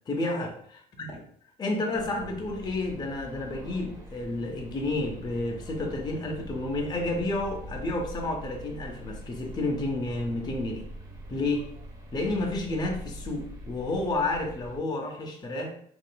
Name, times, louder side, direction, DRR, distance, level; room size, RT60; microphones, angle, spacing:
voice 1, 0.1-1.1 1.6-10.9 11.3-11.7 12.1-15.8, left 2 dB, 25° left, 2 dB, 0.5 m, -30 dB
sound 1, 1.9-14.8, right 1 dB, 20° right, 0.6 m, -43 dB
3.7 x 2.4 x 2.3 m, 0.63 s
cardioid pair, 110°, 17 cm